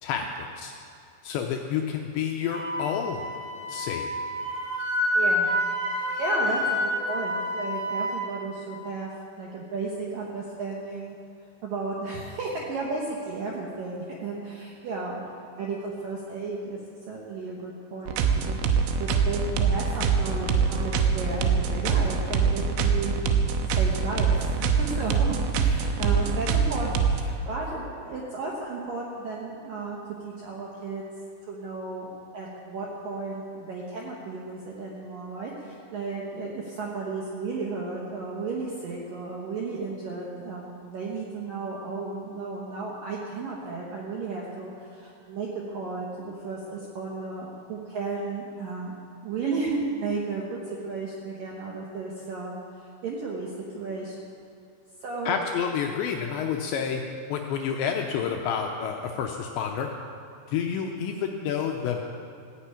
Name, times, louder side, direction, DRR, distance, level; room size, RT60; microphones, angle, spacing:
voice 1, 0.0-0.7 1.2-3.2 3.7-4.1 55.3-57.0 57.3-59.9 60.5-62.0, left 7 dB, 80° left, 2 dB, 2.7 m, -29 dB
Wind instrument woodwind instrument, 2.5-8.3, left 1 dB, 30° right, 2.7 m, -28 dB
voice 2, 5.1-5.5 6.2-9.1 9.4-11.2 11.6-15.2 15.6-16.8 17.1-23.2 23.7-30.0 30.2-31.0 31.4-48.9 49.2-54.4 55.0-55.4, right 3 dB, 70° right, -3 dB, 2.1 m, -34 dB
sound 1, 18.1-27.2, right 5 dB, 90° right, 3.5 m, -24 dB
15.5 x 10.0 x 8.7 m, 2.4 s
omnidirectional pair, 5.9 m